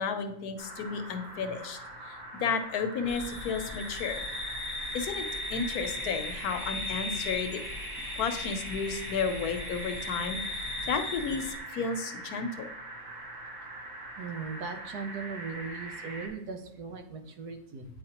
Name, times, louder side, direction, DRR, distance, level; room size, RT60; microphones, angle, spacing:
voice 1, 0.0-1.8 2.1-4.2 4.9-7.6 8.2-10.4 10.9-12.7, left 5 dB, 75° left, 7 dB, 1.2 m, -32 dB
sound 1, 0.6-16.3, right 2 dB, 50° right, 1.9 m, -42 dB
sound 2, 3.1-11.6, left 3 dB, 35° left, 0.5 m, -38 dB
voice 2, 14.2-17.9, right 5 dB, 85° right, 6 dB, 1.3 m, -38 dB
8.6 x 4.5 x 2.8 m, 0.81 s
omnidirectional pair, 1.7 m